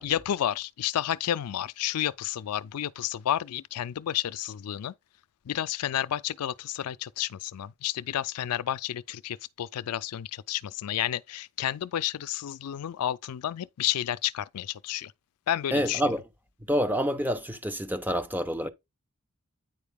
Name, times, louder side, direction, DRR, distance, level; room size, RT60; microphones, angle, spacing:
voice 1, 0.0-4.9 5.5-15.1 15.5-16.1, left 11 dB, 85° left, 0.4 m, -31 dB
voice 2, 15.7-16.2 16.7-18.7, equal, 10° right, 0.7 m, -27 dB
9.0 x 4.7 x 3.4 m
head